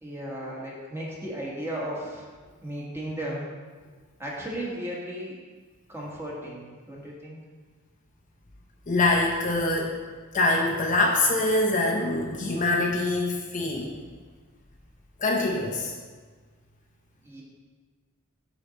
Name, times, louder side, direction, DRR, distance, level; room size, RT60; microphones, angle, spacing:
voice 1, 0.0-2.3 2.6-3.5 4.2-5.3 5.9-7.4 17.2-17.4, right 1 dB, 10° right, -4 dB, 1.5 m, -35 dB
voice 2, 8.9-10.0 10.3-13.9 15.2-15.9, left 2 dB, 35° left, -1 dB, 0.7 m, -24 dB
6.8 x 6.2 x 4.1 m, 1.4 s
head